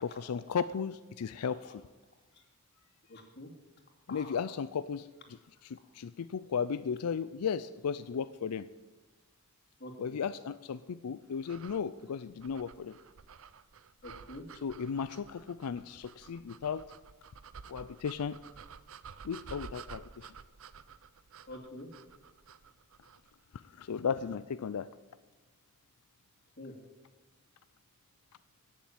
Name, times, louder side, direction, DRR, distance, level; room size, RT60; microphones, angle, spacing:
voice 1, 0.0-1.6 4.1-5.1 5.6-8.7 10.0-12.9 14.6-16.8 17.7-18.4 19.2-20.3 23.8-24.9, left 6 dB, 90° left, 14 dB, 0.4 m, -35 dB
voice 2, 1.4-1.7 3.1-3.5 4.1-4.4 9.8-10.2 14.0-14.4 21.5-21.9 26.6-26.7, left 1 dB, 50° left, 2 dB, 2.6 m, -47 dB
sound 1, 11.4-23.3, right 6 dB, 60° right, 0.6 m, -52 dB
15.5 x 7.4 x 8.9 m, 1.2 s
head